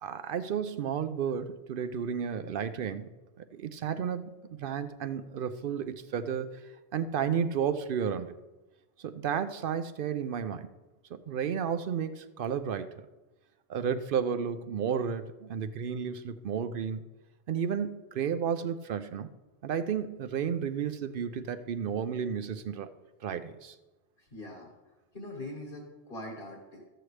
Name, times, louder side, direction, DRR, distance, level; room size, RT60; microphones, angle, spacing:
voice 1, 0.0-3.1 3.4-6.6 6.9-8.3 9.0-10.7 11.1-12.9 13.7-17.0 17.5-19.3 19.6-22.9 23.2-23.7, right 7 dB, 65° right, 11 dB, 0.7 m, -32 dB
voice 2, 24.2-26.8, left 1 dB, 60° left, -1 dB, 1.7 m, -43 dB
13.5 x 7.8 x 3.2 m, 1.1 s
omnidirectional pair, 1.1 m